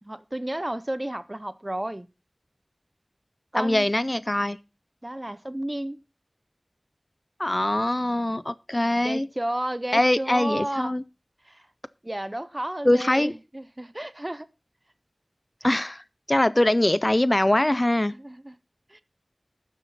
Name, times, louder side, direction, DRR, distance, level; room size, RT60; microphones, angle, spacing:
voice 1, 0.0-2.1 3.5-3.9 5.0-6.0 9.0-10.9 11.4-11.7 12.0-14.5 18.1-18.6 18.9-19.0, right 1 dB, 30° right, 0.5 m, -32 dB
voice 2, 3.5-4.6 7.4-9.3 9.9-11.0 12.8-13.3 15.6-16.0 16.3-18.1, left 1 dB, 35° left, 0.4 m, -22 dB
12.5 x 7.2 x 4.0 m
wide cardioid pair, 45°, 0 cm